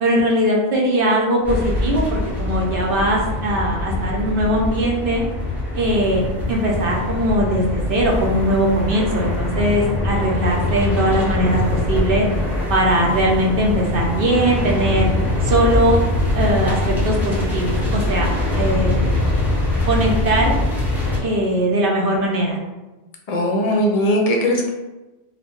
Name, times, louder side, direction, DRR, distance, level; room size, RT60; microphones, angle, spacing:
voice 1, 0.0-5.2 5.7-6.2 6.5-12.3 12.7-15.1 15.4-16.0 16.3-18.3 18.6-19.2 19.8-20.5 21.2-22.6, right 1 dB, 65° right, -2 dB, 0.8 m, -20 dB
sound 1, 1.4-21.2, left 1 dB, ahead, 0.5 m, -23 dB
voice 2, 23.3-24.7, equal, 50° left, 0 dB, 0.5 m, -19 dB
2.4 x 2.1 x 3.4 m, 1.1 s
omnidirectional pair, 1.0 m